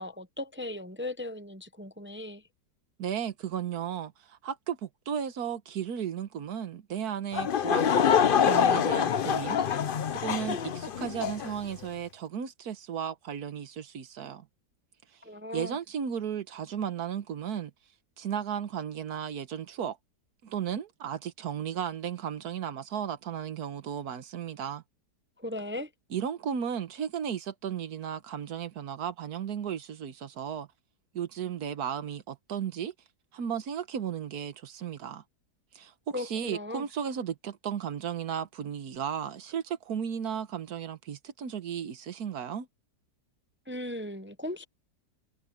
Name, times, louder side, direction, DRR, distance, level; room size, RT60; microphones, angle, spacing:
voice 1, 0.0-2.4 15.2-15.8 25.4-25.9 36.1-36.9 43.7-44.6, left 1 dB, 20° right, 0.3 m, -37 dB
voice 2, 3.0-7.9 8.4-9.6 10.1-14.5 15.5-17.7 18.2-20.0 20.4-24.8 26.1-30.7 31.1-32.9 33.3-35.2 35.7-42.7, right 8 dB, 65° right, 1.6 m, -34 dB
Laughter / Crowd, 7.3-11.5, left 8 dB, 55° left, 0.6 m, -25 dB
omnidirectional pair, 1.8 m